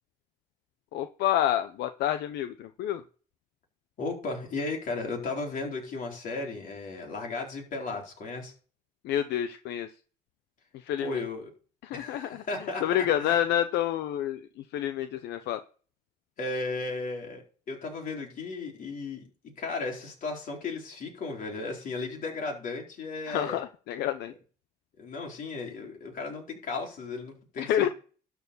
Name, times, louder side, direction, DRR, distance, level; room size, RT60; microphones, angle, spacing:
voice 1, 0.9-3.0 9.0-9.9 10.7-11.2 11.8-12.4 12.8-14.4 14.7-15.6 23.3-24.3 27.6-27.9, left 11 dB, 80° left, 10 dB, 0.8 m, -28 dB
voice 2, 4.0-8.5 11.0-11.5 11.9-12.8 13.2-13.4 16.4-19.3 19.6-23.6 25.0-27.9, left 3 dB, 55° left, 0 dB, 4.2 m, -35 dB
12.5 x 4.8 x 6.7 m, 0.39 s
cardioid pair, 110°, 17 cm